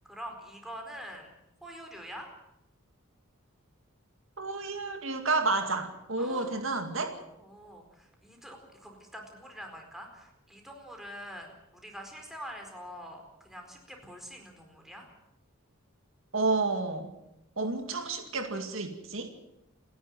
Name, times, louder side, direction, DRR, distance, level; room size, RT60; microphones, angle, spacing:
voice 1, 0.0-2.3 6.2-6.6 7.4-15.1 17.6-17.7, equal, ahead, 2 dB, 4.5 m, -45 dB
voice 2, 4.4-7.2 16.3-17.1 17.6-19.3, right 3 dB, 65° right, 5 dB, 2.2 m, -30 dB
29.0 x 11.0 x 9.3 m, 0.88 s
head